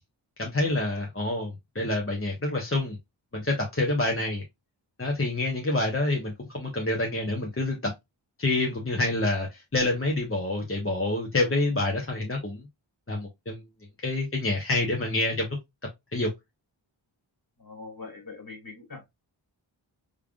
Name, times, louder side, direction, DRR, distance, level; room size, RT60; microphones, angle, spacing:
voice 1, 0.4-3.0 3.3-4.4 5.0-7.9 8.4-12.7 13.1-13.6 14.0-15.6 16.1-16.3, left 2 dB, 25° left, 1.0 m, -27 dB
voice 2, 17.6-19.1, left 3 dB, 45° left, 2.1 m, -42 dB
3.7 x 3.4 x 2.3 m
wide cardioid pair, 45°, 48 cm